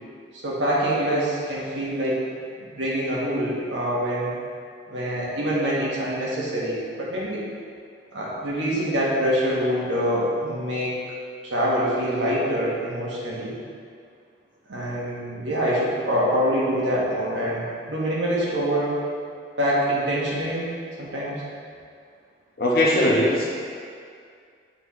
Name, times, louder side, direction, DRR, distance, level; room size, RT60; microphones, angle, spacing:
voice 1, 0.3-2.2 2.6-4.3 4.9-7.4 8.1-11.0 11.4-13.6 14.7-19.0 19.6-20.7 21.0-21.4, equal, 80° right, -6 dB, 1.5 m, -25 dB
voice 2, 22.6-23.5, left 1 dB, 50° left, -4 dB, 1.0 m, -19 dB
8.0 x 4.3 x 3.2 m, 2.2 s
head